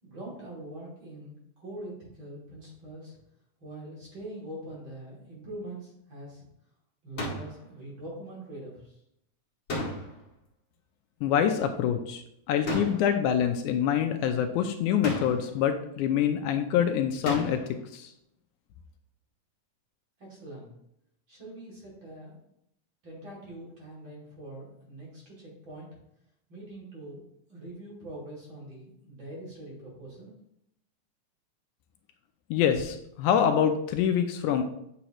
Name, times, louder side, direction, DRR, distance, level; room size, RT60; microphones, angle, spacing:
voice 1, 0.0-3.2 3.6-6.5 7.0-9.0 20.2-20.7 21.3-22.4 23.0-25.9 26.5-30.3, right 1 dB, 40° right, -5 dB, 3.1 m, -43 dB
sound 1, 7.2-7.6 9.7-10.3 12.7-13.2 15.0-15.6 17.2-17.8, left 1 dB, 40° left, 2.4 m, -33 dB
voice 2, 11.2-12.2 12.5-17.6 17.9-18.1 32.5-34.6, left 9 dB, 80° left, 6 dB, 2.0 m, -25 dB
9.1 x 6.3 x 3.0 m, 0.77 s
omnidirectional pair, 3.6 m